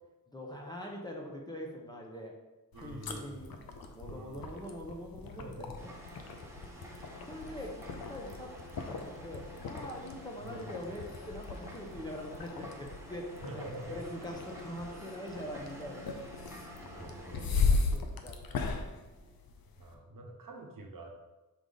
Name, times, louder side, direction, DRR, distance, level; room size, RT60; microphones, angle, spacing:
voice 1, 0.3-2.4 2.8-5.9 6.9-8.5 8.8-16.6 17.0-19.6, equal, 10° left, 0 dB, 0.9 m, -44 dB
sound 1, 2.7-19.9, left 4 dB, 75° left, 0.7 m, -37 dB
voice 2, 2.7-3.5 4.0-4.5 5.3-5.9 10.4-10.7 13.1-14.0 16.8-17.6 19.8-21.1, right 1 dB, 65° right, 1 dB, 1.1 m, -46 dB
sound 2, 5.8-17.5, equal, 5° right, 1.1 m, -49 dB
5.1 x 4.9 x 4.0 m, 1.1 s
wide cardioid pair, 130°, 36 cm